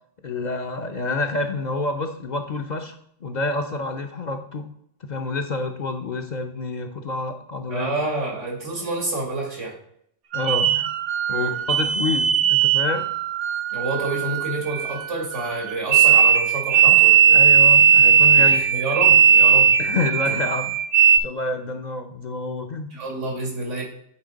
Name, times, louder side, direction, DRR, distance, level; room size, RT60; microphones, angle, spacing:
voice 1, 0.2-4.7 5.0-7.9 10.3-10.9 11.3-13.1 16.7-17.0 17.3-18.6 19.8-20.8 21.2-22.9, left 3 dB, 45° left, 5 dB, 0.6 m, -28 dB
voice 2, 7.7-9.7 11.3-11.6 13.7-17.4 18.3-19.7 22.9-23.8, right 2 dB, 85° right, -1 dB, 2.6 m, -28 dB
sound 1, 10.3-21.2, right 8 dB, 60° right, 0.8 m, -17 dB
8.7 x 4.1 x 3.9 m, 0.71 s
omnidirectional pair, 1.2 m